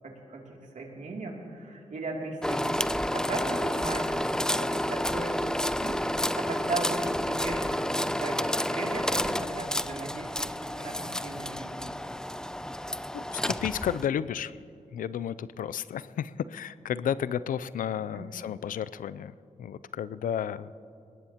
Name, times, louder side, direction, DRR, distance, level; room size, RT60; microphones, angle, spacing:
voice 1, 0.0-6.1 6.3-10.4 10.7-12.0 18.1-18.3, right 2 dB, 65° right, -1 dB, 2.8 m, -37 dB
sound 1, 2.4-14.1, left 1 dB, 5° left, 0.4 m, -30 dB
voice 2, 13.1-14.6 14.9-20.8, left 9 dB, 85° left, 17 dB, 0.4 m, -32 dB
21.5 x 18.5 x 2.9 m, 2.6 s
cardioid pair, 50°, 14 cm